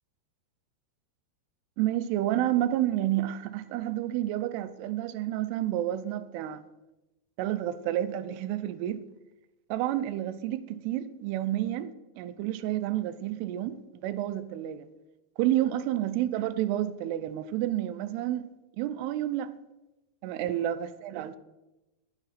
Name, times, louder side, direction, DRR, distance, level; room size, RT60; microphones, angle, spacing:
voice 1, 1.8-6.6 7.4-9.0 9.7-14.9 15.4-18.5 18.8-19.5 20.2-21.4, right 13 dB, 85° right, 2.6 m, -30 dB
10.5 x 9.6 x 4.1 m
omnidirectional pair, 4.6 m